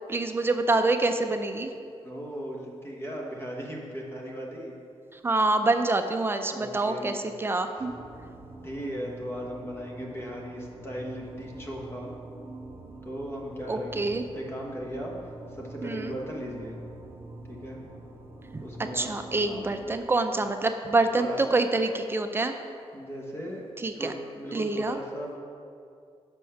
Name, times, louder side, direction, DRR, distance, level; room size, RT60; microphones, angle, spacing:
voice 1, 0.1-1.7 5.1-7.9 13.7-14.2 15.8-16.2 18.5-18.6 18.9-22.6 23.8-24.1 24.5-25.0, right 2 dB, 20° right, 7 dB, 0.4 m, -26 dB
voice 2, 2.0-4.7 6.5-7.2 8.6-12.1 13.0-14.1 14.3-16.8 17.5-17.8 18.6-19.1 19.5-19.7 21.1-21.6 22.9-23.6 23.9-25.4, equal, 20° left, -1 dB, 1.1 m, -37 dB
sound 1, 7.8-19.9, right 2 dB, 60° right, 1.6 m, -45 dB
6.3 x 5.3 x 5.7 m, 2.4 s
wide cardioid pair, 150°, 11 cm